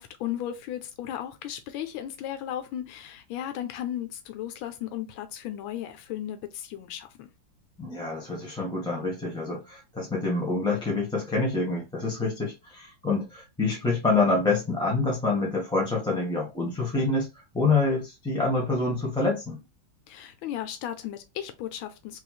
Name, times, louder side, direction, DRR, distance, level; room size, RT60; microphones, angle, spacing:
voice 1, 0.0-7.3 20.1-22.2, left 11 dB, 90° left, 1.4 m, -35 dB
voice 2, 7.8-19.6, left 3 dB, 5° left, 0.8 m, -27 dB
3.4 x 3.1 x 2.3 m
omnidirectional pair, 2.1 m